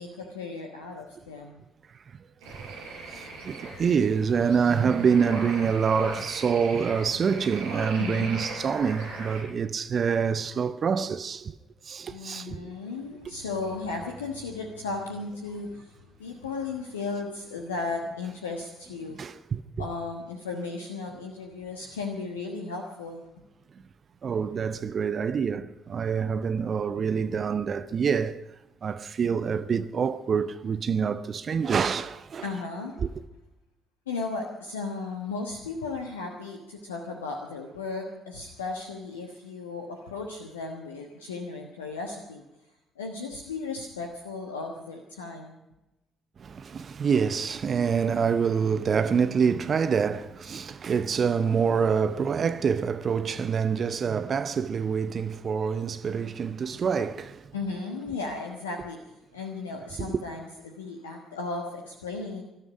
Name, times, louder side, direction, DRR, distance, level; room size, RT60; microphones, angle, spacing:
voice 1, 0.0-1.6 8.0-8.3 12.1-15.9 16.2-19.2 19.8-23.2 32.4-32.9 34.1-42.4 43.0-45.6 57.5-59.0 59.3-62.4, left 3 dB, 80° left, 1.2 m, -35 dB
sound 1, 2.4-9.4, right 3 dB, 70° right, 5.0 m, -39 dB
voice 2, 3.1-11.6 11.8-12.7 19.1-19.9 24.2-28.4 28.8-32.5 33.0-33.1 46.4-57.5 60.0-60.2, right 6 dB, 45° right, 0.7 m, -26 dB
20.5 x 13.0 x 5.1 m
figure-of-eight pair, 45°, 0 cm